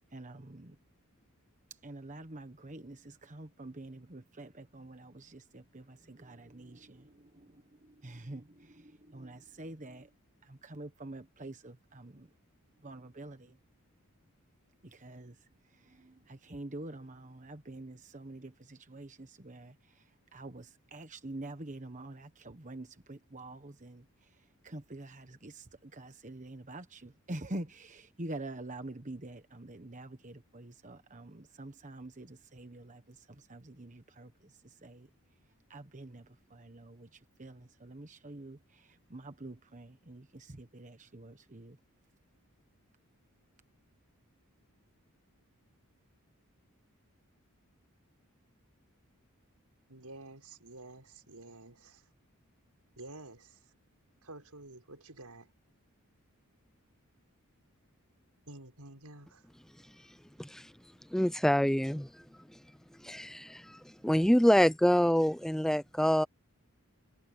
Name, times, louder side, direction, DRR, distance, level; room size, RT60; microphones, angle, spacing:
voice 1, 0.1-0.8 1.8-10.1 10.4-12.3 12.8-13.6 14.8-15.4 15.7-20.0 20.3-24.0 24.6-35.1 35.7-41.8, right 2 dB, 35° right, 1.3 m, -47 dB
voice 2, 49.9-52.0 53.0-53.6 54.2-55.5 58.5-59.4, right 2 dB, 90° right, 6.1 m, -50 dB
voice 3, 61.1-62.1 63.0-63.8 64.0-66.3, equal, ahead, 0.4 m, -26 dB
head